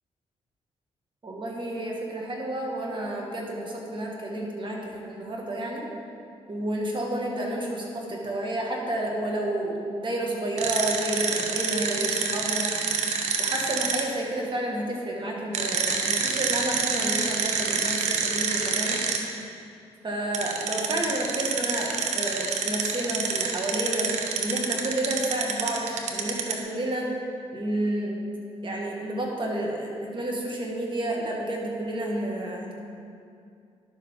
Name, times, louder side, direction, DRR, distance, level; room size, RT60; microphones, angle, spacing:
voice 1, 1.2-5.8 6.5-12.7 13.4-19.0 20.0-24.1 24.4-25.8 26.1-27.1 27.5-28.2 28.6-32.7, right 1 dB, 45° right, -1 dB, 2.0 m, -30 dB
sound 1, 10.6-14.0 15.5-19.2 20.3-26.6, right 5 dB, 75° right, 0.9 m, -27 dB
11.0 x 7.2 x 3.8 m, 2.4 s
supercardioid pair, 60°, 12 cm